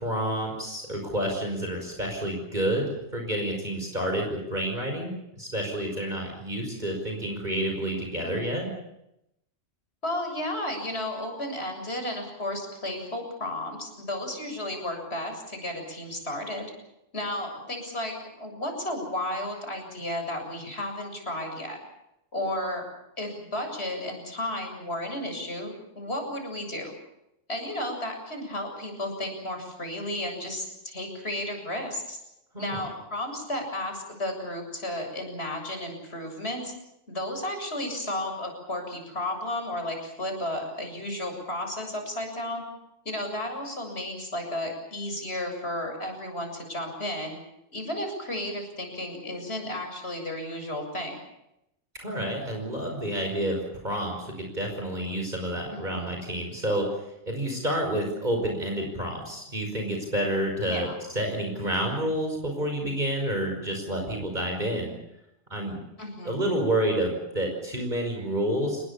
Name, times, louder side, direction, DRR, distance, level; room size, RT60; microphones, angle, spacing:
voice 1, 0.0-8.8 32.5-32.8 51.9-64.9 65.5-65.8 66.2-68.9, right 1 dB, 35° right, 1 dB, 5.7 m, -29 dB
voice 2, 10.0-16.7 17.1-21.8 22.3-22.8 23.2-26.9 27.5-32.2 32.6-36.7 37.1-42.6 43.0-47.4 47.7-51.2 55.7-56.1 60.6-60.9 66.0-66.4, left 1 dB, 55° left, 4 dB, 7.8 m, -33 dB
29.5 x 21.0 x 7.3 m, 0.83 s
omnidirectional pair, 1.3 m